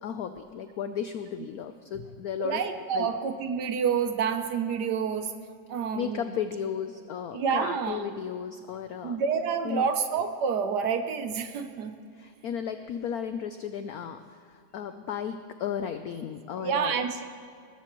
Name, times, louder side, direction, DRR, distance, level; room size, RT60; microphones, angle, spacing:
voice 1, 0.0-2.6 2.9-3.1 6.0-9.2 9.6-9.9 12.2-17.0, left 8 dB, 85° left, 9 dB, 0.8 m, -34 dB
voice 2, 2.4-5.3 5.7-6.2 7.3-8.0 9.0-12.0 16.6-17.2, right 6 dB, 65° right, 8 dB, 1.2 m, -28 dB
20.0 x 14.0 x 3.0 m, 2.3 s
omnidirectional pair, 2.2 m